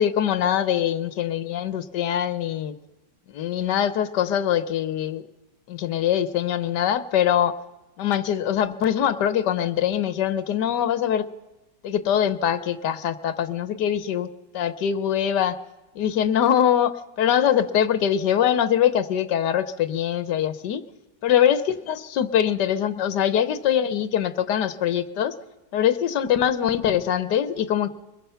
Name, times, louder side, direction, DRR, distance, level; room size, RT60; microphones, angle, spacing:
voice 1, 0.0-2.7 3.3-5.2 5.7-7.6 8.0-11.3 11.8-14.3 14.5-15.6 15.9-20.9 21.2-25.3 25.7-27.9, left 9 dB, 80° left, 13 dB, 1.6 m, -23 dB
23.5 x 21.5 x 5.7 m, 1.1 s
omnidirectional pair, 1.8 m